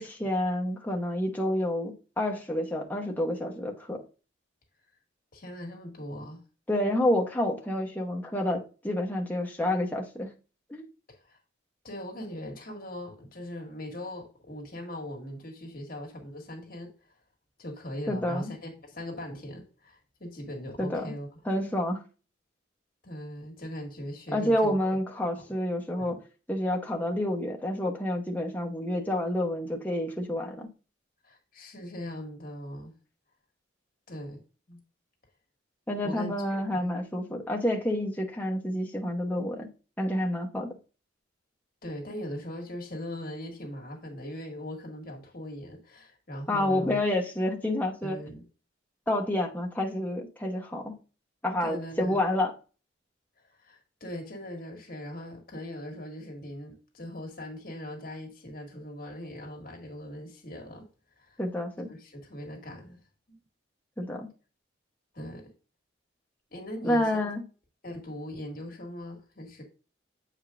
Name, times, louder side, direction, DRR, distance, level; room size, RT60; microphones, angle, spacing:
voice 1, 0.0-4.0 6.7-10.3 10.7-10.8 18.1-18.5 20.8-21.1 21.4-22.0 24.3-26.2 26.5-30.7 35.9-39.7 40.0-40.8 46.5-48.2 49.1-51.0 51.4-52.5 61.4-61.9 64.0-64.3 66.8-67.4, left 1 dB, 10° left, 1.0 m, -29 dB
voice 2, 5.3-6.4 11.1-11.4 11.8-17.1 17.6-21.3 23.0-24.8 25.3-25.5 26.0-26.2 31.2-32.9 34.1-34.8 36.0-36.3 36.7-37.0 41.8-47.0 48.0-48.4 51.6-52.2 53.4-60.8 61.2-61.4 61.9-63.0 65.1-65.5 66.5-67.3 67.8-69.6, equal, 45° left, 1.9 m, -40 dB
8.1 x 5.0 x 2.5 m
head